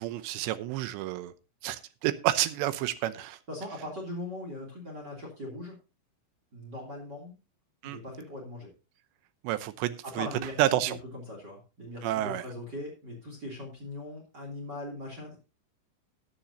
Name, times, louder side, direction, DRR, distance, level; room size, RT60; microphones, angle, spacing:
voice 1, 0.0-1.3 1.6-3.4 7.8-8.0 9.4-10.3 10.6-11.0 12.0-12.4, right 14 dB, 80° right, 3.0 m, -29 dB
voice 2, 3.5-5.7 6.5-7.3 7.8-8.7 10.0-10.8 11.1-15.3, left 1 dB, 25° right, 3.1 m, -40 dB
14.5 x 10.0 x 2.8 m
omnidirectional pair, 5.1 m